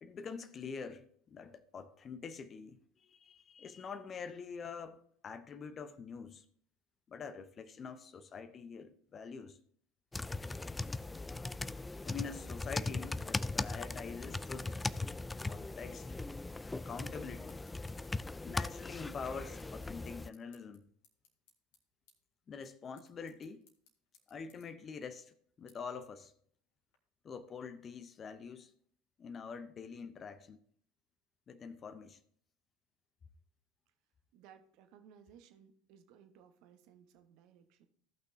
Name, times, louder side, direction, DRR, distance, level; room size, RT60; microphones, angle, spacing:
voice 1, 0.0-6.4 7.1-9.6 12.0-14.8 15.5-16.1 16.8-17.6 18.4-20.9 22.5-23.6 24.3-26.3 27.2-28.7 29.2-30.6 31.5-32.2, left 5 dB, 35° left, 0.7 m, -45 dB
sound 1, 10.1-20.3, left 2 dB, 10° left, 0.3 m, -39 dB
sound 2, 19.4-27.0, left 6 dB, 65° left, 1.8 m, -71 dB
voice 2, 34.3-37.9, right 8 dB, 55° right, 1.1 m, -60 dB
16.0 x 6.0 x 2.7 m
hypercardioid pair, 75°, 0 cm